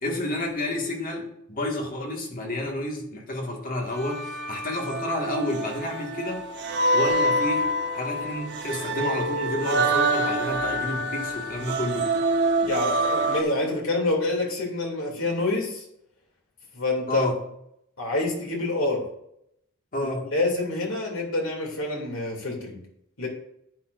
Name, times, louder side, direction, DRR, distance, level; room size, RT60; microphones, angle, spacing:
voice 1, 0.0-6.4 6.9-12.1 17.1-17.4 19.9-20.3, left 1 dB, 40° left, 0 dB, 1.9 m, -30 dB
sound 1, 3.9-13.4, right 1 dB, 55° right, 1.1 m, -26 dB
voice 2, 12.6-15.8 16.7-17.3 18.0-19.0 20.0-22.8 23.2-23.3, left 2 dB, 70° left, -1 dB, 2.8 m, -27 dB
10.5 x 9.0 x 2.6 m, 0.76 s
head